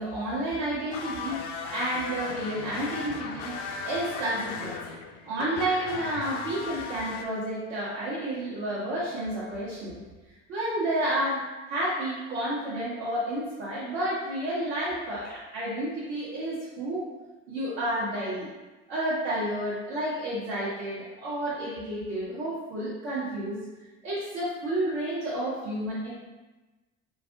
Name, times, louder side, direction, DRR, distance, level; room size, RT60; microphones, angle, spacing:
voice 1, 0.0-5.0 5.2-10.0 10.5-17.0 17.5-18.5 18.9-23.6 24.0-26.1, right 1 dB, 85° right, -9 dB, 1.0 m, -31 dB
sound 1, 0.9-7.2, left 5 dB, 60° left, 0.5 m, -36 dB
2.5 x 2.5 x 3.5 m, 1.2 s
supercardioid pair, 75°, 35 cm